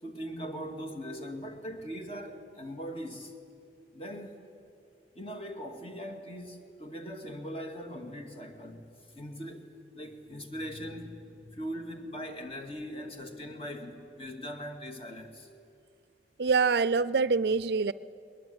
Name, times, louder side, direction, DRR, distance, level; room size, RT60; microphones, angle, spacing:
voice 1, 0.0-3.4 3.9-4.4 5.1-9.7 9.9-15.5, equal, 35° left, 5 dB, 2.2 m, -40 dB
voice 2, 16.4-17.9, right 4 dB, 70° right, 18 dB, 0.5 m, -25 dB
21.0 x 20.5 x 9.5 m, 2.5 s
head